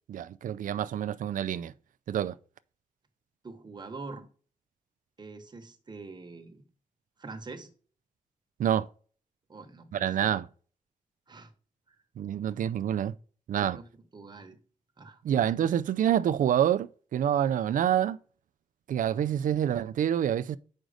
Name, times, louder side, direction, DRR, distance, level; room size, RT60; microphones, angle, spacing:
voice 1, 0.1-1.7 2.1-2.3 8.6-8.9 9.9-10.5 12.2-13.1 13.5-13.8 15.2-18.2 18.9-20.6, right 10 dB, 85° right, 0.4 m, -27 dB
voice 2, 3.4-4.3 5.2-6.6 7.2-7.7 9.5-10.3 11.3-11.5 11.9-12.0 12.6-12.7 13.6-13.8 14.1-14.6 15.0-15.2, right 3 dB, 35° right, 1.1 m, -44 dB
6.2 x 5.2 x 5.0 m
wide cardioid pair, 110°, 13 cm